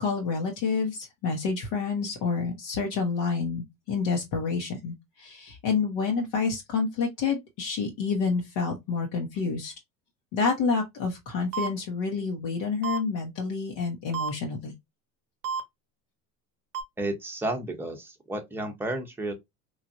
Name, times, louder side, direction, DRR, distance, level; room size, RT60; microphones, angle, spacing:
voice 1, 0.0-9.7 10.3-14.7, left 5 dB, 55° left, 0.9 m, -28 dB
sound 1, 11.5-11.7 12.8-13.0 14.1-14.3 15.4-15.6 16.7-16.8, right 6 dB, 90° right, 0.9 m, -29 dB
voice 2, 17.0-19.3, right 1 dB, 5° right, 0.8 m, -32 dB
3.1 x 2.4 x 2.5 m
hypercardioid pair, 80°, 47 cm